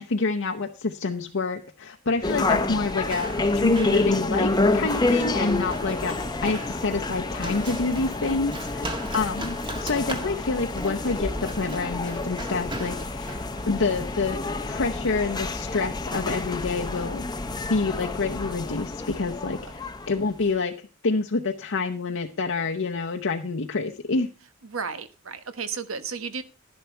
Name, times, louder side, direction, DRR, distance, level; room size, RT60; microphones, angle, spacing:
voice 1, 0.0-8.8 9.1-17.2 17.7-19.8 20.1-24.3, left 3 dB, 65° left, 2 dB, 0.8 m, -27 dB
Run, 2.1-19.4, right 1 dB, 25° right, 1.7 m, -40 dB
sound 1, 2.2-20.4, left 2 dB, 20° left, 0.8 m, -28 dB
voice 2, 24.6-26.4, right 5 dB, 80° right, 11 dB, 1.2 m, -34 dB
11.5 x 10.5 x 4.4 m, 0.32 s
head